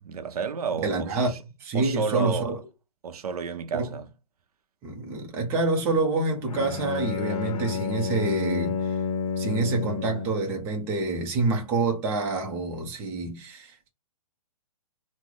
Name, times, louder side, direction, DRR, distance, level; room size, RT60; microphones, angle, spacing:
voice 1, 0.0-1.4 1.7-2.6 3.0-4.1, right 5 dB, 80° right, 0.6 m, -31 dB
voice 2, 0.8-1.3 1.6-2.6 3.7-4.0 4.8-9.0 9.4-13.9, right 3 dB, 10° right, 0.5 m, -27 dB
Bowed string instrument, 6.5-10.5, left 5 dB, 65° left, 0.8 m, -30 dB
3.0 x 2.0 x 3.8 m
hypercardioid pair, 165°, 19 cm